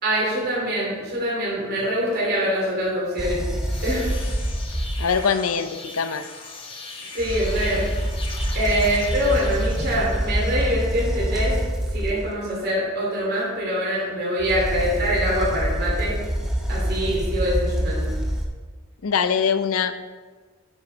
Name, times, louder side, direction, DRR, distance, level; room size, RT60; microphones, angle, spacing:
voice 1, 0.0-3.5 3.8-4.1 7.1-7.8 8.5-11.5 11.9-16.2 16.7-18.1, equal, 45° right, -6 dB, 2.8 m, -24 dB
sound 1, 3.2-5.3 7.2-12.4 14.4-18.5, equal, ahead, 0.8 m, -26 dB
sound 2, 3.4-10.7, left 3 dB, 25° left, 0.9 m, -39 dB
voice 2, 5.0-6.2 19.0-19.9, left 6 dB, 80° left, 11 dB, 0.6 m, -22 dB
9.1 x 6.2 x 4.5 m, 1.4 s
head